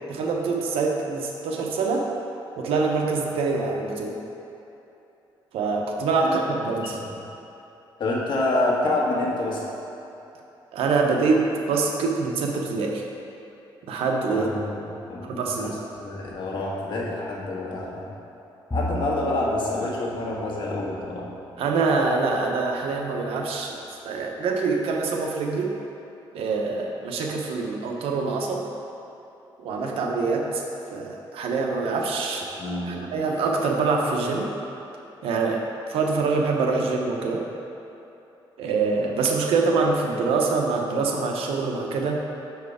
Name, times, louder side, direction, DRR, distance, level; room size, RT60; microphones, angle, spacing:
voice 1, 0.1-2.1 2.6-4.2 5.5-7.0 10.7-13.0 13.9-14.5 15.2-15.7 21.6-23.8 24.0-25.7 26.3-28.7 29.6-30.6 30.9-32.5 32.9-34.5 35.2-35.6 35.9-37.4 38.6-42.2, right 4 dB, 85° right, 1 dB, 0.8 m, -25 dB
voice 2, 6.7-7.2 8.0-9.7 14.3-14.6 15.1-15.7 16.0-18.1 18.7-21.2 32.6-33.0, left 2 dB, 55° left, -4 dB, 1.4 m, -27 dB
Bowed string instrument, 18.7-22.2, equal, 15° left, 0.5 m, -36 dB
6.7 x 4.7 x 4.8 m, 2.9 s
cardioid pair, 105°, 9 cm